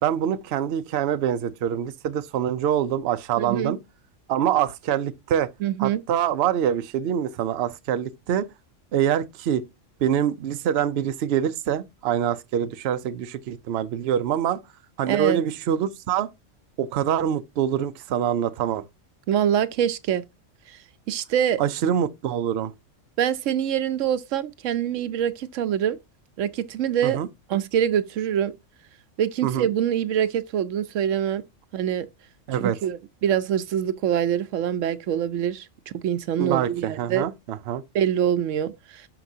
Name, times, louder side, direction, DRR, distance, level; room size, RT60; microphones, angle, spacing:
voice 1, 0.0-3.8 4.3-5.5 5.8-8.5 8.9-9.6 10.0-14.6 15.0-16.3 16.8-18.8 21.6-22.7 27.0-27.3 29.4-29.7 32.5-32.8 36.4-37.8, right 9 dB, 60° right, 0.8 m, -25 dB
voice 2, 3.4-3.7 5.6-6.0 15.1-15.4 19.3-20.2 21.1-21.6 23.2-26.0 26.4-27.2 27.5-28.5 29.2-31.4 31.7-32.1 32.6-35.7 35.9-37.3 37.9-39.1, right 9 dB, 80° right, 1.0 m, -24 dB
12.0 x 4.8 x 2.7 m
omnidirectional pair, 1.3 m